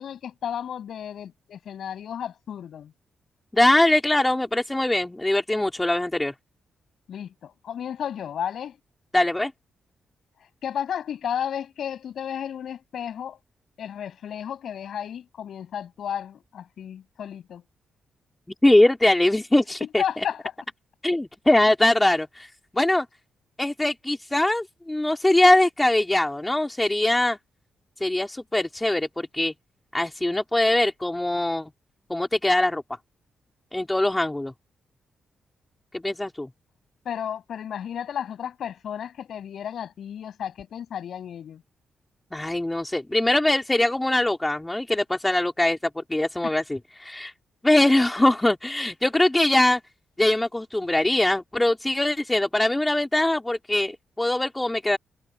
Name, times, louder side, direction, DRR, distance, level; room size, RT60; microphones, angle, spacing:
voice 1, 0.0-2.9 7.1-8.8 10.6-13.4 13.8-17.6 20.0-20.4 37.0-41.6, left 9 dB, 70° left, 7.7 m, -33 dB
voice 2, 3.5-6.3 9.1-9.5 18.6-20.2 21.0-23.1 23.6-27.4 28.0-29.5 29.9-31.7 32.1-32.8 33.7-34.5 35.9-36.5 42.3-47.3 47.6-49.8 50.2-55.0, left 1 dB, 10° left, 3.8 m, -22 dB
cardioid pair, 100°, 0 cm